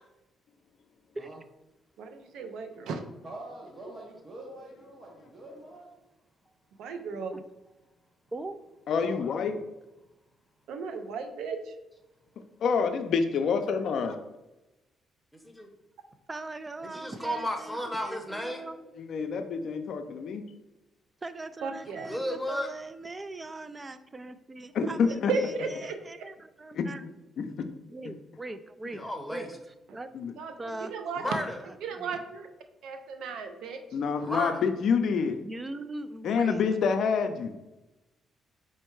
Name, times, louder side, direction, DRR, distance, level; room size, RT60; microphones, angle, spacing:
voice 1, 2.0-3.0 6.8-7.4 10.7-11.7 21.6-22.1 25.3-26.3 30.4-30.5 30.9-31.3 31.8-32.5 32.8-33.8 34.2-34.3, right 4 dB, 85° right, 7 dB, 0.5 m, -35 dB
voice 2, 3.2-5.9 8.9-9.5 22.0-22.1, right 1 dB, 45° right, -2 dB, 0.9 m, -45 dB
voice 3, 8.9-9.6 12.6-14.2 19.0-20.4 24.7-25.3 26.7-26.9 27.4-27.7 30.1-30.3 33.9-35.4 36.2-37.5, left 5 dB, 65° left, 7 dB, 0.4 m, -27 dB
voice 4, 15.3-15.7 16.8-18.6 21.8-22.7 29.0-29.5 31.2-31.6 34.2-34.6, equal, ahead, 2 dB, 0.8 m, -33 dB
voice 5, 16.3-18.9 21.2-27.0 27.9-29.0 29.3-29.5 29.9-30.1 30.6-30.9 31.3-32.2 35.4-36.6, right 2 dB, 25° right, 12 dB, 0.3 m, -41 dB
4.5 x 2.2 x 4.5 m, 1.0 s
cardioid pair, 90°, 0 cm